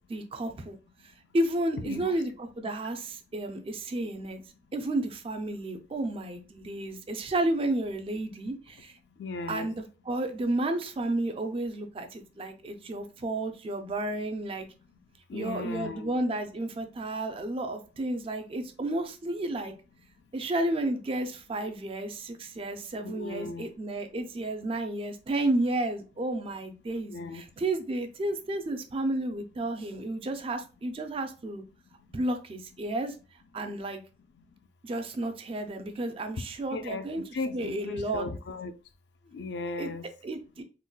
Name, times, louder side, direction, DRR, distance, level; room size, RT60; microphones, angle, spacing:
voice 1, 0.1-0.8 1.3-4.4 4.7-8.9 9.5-14.7 15.3-19.7 20.3-31.6 32.1-33.1 33.5-34.0 34.8-37.2 37.5-38.3 39.8-39.9 40.2-40.6, right 1 dB, 30° right, 0.4 m, -32 dB
voice 2, 1.8-2.2 9.2-9.7 15.3-16.1 23.0-23.7 26.9-27.4 36.7-38.7 39.3-40.0, left 3 dB, 65° left, 0.3 m, -37 dB
3.8 x 2.1 x 2.2 m
head